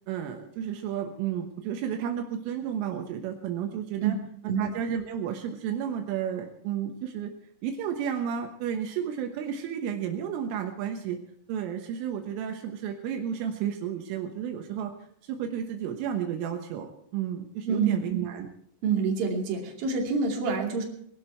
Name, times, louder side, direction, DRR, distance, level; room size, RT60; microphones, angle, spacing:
voice 1, 0.1-4.2 4.4-7.3 7.6-11.2 11.5-14.9 15.2-18.5, right 8 dB, 80° right, 4 dB, 3.7 m, -32 dB
voice 2, 17.7-18.1 18.8-20.8, right 5 dB, 50° right, 0 dB, 4.0 m, -27 dB
21.0 x 12.0 x 4.5 m, 0.66 s
omnidirectional pair, 5.8 m